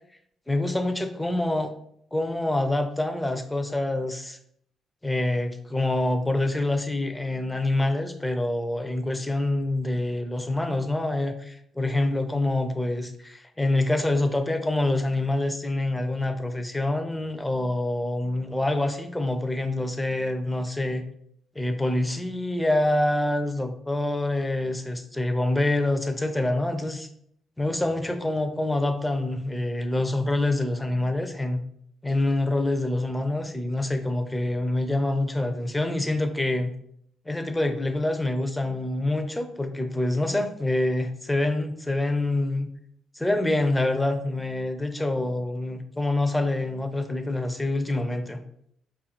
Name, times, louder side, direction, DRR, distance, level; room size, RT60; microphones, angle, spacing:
voice 1, 0.5-1.7 2.1-4.4 5.0-21.0 21.6-27.1 27.6-31.6 32.0-36.7 37.3-42.7 43.2-48.4, left 2 dB, 10° left, 7 dB, 0.4 m, -26 dB
4.5 x 2.4 x 2.9 m, 0.69 s
cardioid pair, 90°, 0 cm